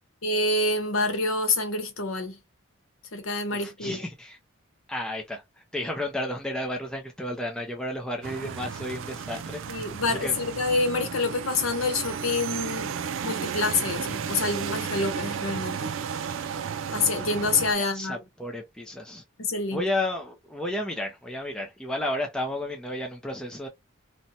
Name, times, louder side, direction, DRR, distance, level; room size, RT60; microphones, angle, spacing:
voice 1, 0.2-2.4 3.1-4.0 9.7-12.9 13.2-15.9 16.9-18.2 19.4-19.8, left 3 dB, 80° left, 0.9 m, -27 dB
voice 2, 3.5-4.4 4.9-5.4 5.7-10.3 17.8-19.2 19.7-23.7, left 1 dB, 5° left, 0.5 m, -32 dB
sound 1, 8.2-17.7, right 7 dB, 65° right, 0.3 m, -33 dB
2.7 x 2.2 x 2.7 m
head